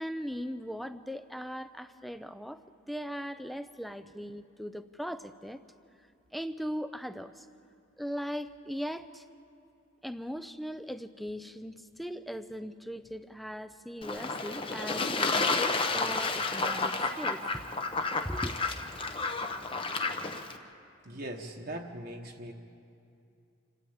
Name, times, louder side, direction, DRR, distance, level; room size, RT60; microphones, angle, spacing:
voice 1, 0.0-2.6 2.9-5.6 6.3-7.5 8.0-9.2 10.0-17.6 18.0-18.5, equal, ahead, 11 dB, 0.5 m, -39 dB
Fowl / Bird / Water, 14.0-20.6, left 3 dB, 25° left, 0.8 m, -31 dB
voice 2, 21.0-22.5, right 1 dB, 45° right, 1 dB, 1.1 m, -40 dB
27.0 x 13.0 x 8.7 m, 2.6 s
head